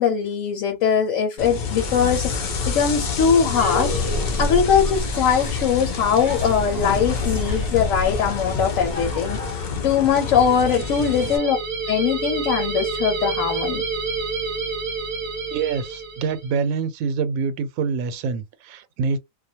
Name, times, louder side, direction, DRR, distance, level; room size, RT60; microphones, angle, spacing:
voice 1, 0.0-4.0 4.4-11.6 11.9-13.8, left 7 dB, 75° left, 1.0 m, -21 dB
sound 1, 1.4-11.4, left 4 dB, 55° left, 0.5 m, -27 dB
sound 2, 3.3-10.3, left 1 dB, 20° left, 0.9 m, -36 dB
sound 3, 10.1-16.5, right 4 dB, 50° right, 0.4 m, -29 dB
voice 2, 15.5-19.2, right 5 dB, 90° right, 1.0 m, -26 dB
2.4 x 2.1 x 2.7 m
omnidirectional pair, 1.4 m